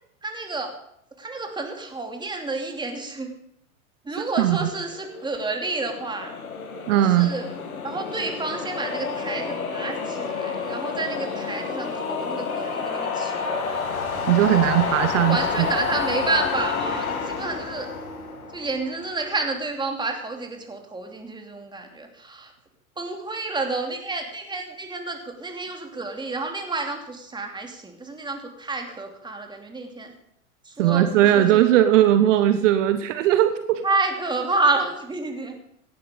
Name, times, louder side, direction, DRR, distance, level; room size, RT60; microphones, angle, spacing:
voice 1, 0.2-0.7 1.2-3.3 4.0-6.3 7.0-7.5 7.8-13.7 14.5-14.7 15.1-17.9 18.5-22.5 23.0-30.1 30.6-31.4 33.8-35.6, right 3 dB, 10° right, 3 dB, 2.8 m, -29 dB
voice 2, 4.4-4.7 6.9-7.3 14.3-15.7 30.8-33.8, right 12 dB, 60° right, 10 dB, 1.1 m, -19 dB
sound 1, 4.9-19.2, left 5 dB, 80° left, 2.6 m, -29 dB
17.0 x 12.0 x 5.2 m, 0.72 s
hypercardioid pair, 100°, 42 cm